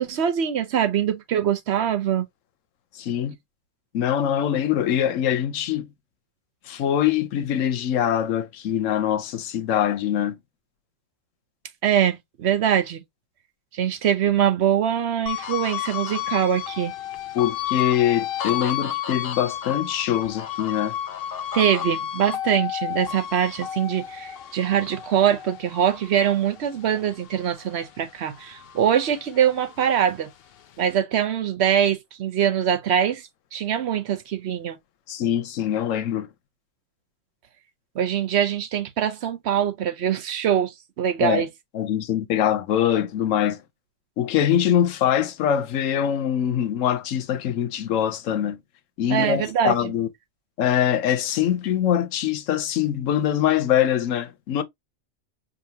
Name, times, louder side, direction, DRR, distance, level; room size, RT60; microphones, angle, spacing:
voice 1, 0.0-2.3 11.8-13.0 13.7-16.9 21.5-30.3 30.8-33.2 33.5-34.8 38.0-41.5 49.1-49.9, right 9 dB, 65° right, 0.9 m, -23 dB
voice 2, 3.0-3.4 3.9-5.9 6.7-10.4 17.3-20.9 35.1-36.3 41.2-41.4 41.7-43.6 44.2-48.6 49.0-50.1 50.6-54.6, left 10 dB, 85° left, 1.0 m, -23 dB
sound 1, 15.3-27.9 28.3-30.0, left 11 dB, 60° left, 0.7 m, -32 dB
5.1 x 2.6 x 2.7 m
omnidirectional pair, 1.3 m